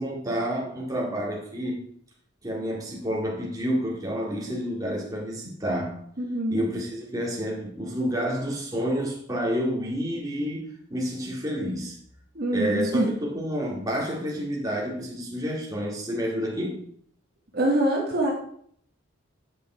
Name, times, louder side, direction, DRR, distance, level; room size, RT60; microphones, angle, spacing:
voice 1, 0.0-1.8 2.4-6.0 6.5-12.0 12.5-16.8, equal, 15° right, -3 dB, 2.1 m, -29 dB
voice 2, 6.2-6.6 12.3-13.1 17.5-18.3, right 1 dB, 50° right, -2 dB, 1.6 m, -24 dB
8.5 x 5.4 x 4.4 m, 0.63 s
head